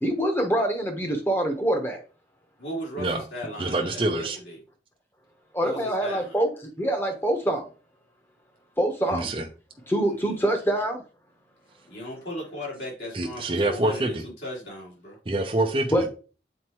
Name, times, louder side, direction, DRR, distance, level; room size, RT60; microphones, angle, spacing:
voice 1, 0.0-2.0 5.5-6.5 6.8-7.7 8.8-9.3 9.9-11.0 15.9-16.0, right 1 dB, 10° left, 1.1 m, -25 dB
voice 2, 2.6-4.6 5.6-6.4 10.1-10.3 11.9-15.2, equal, 65° left, 3.7 m, -37 dB
voice 3, 3.6-4.4 9.1-9.4 13.1-14.2 15.3-16.1, right 2 dB, 30° right, 0.6 m, -26 dB
7.4 x 4.4 x 3.0 m
head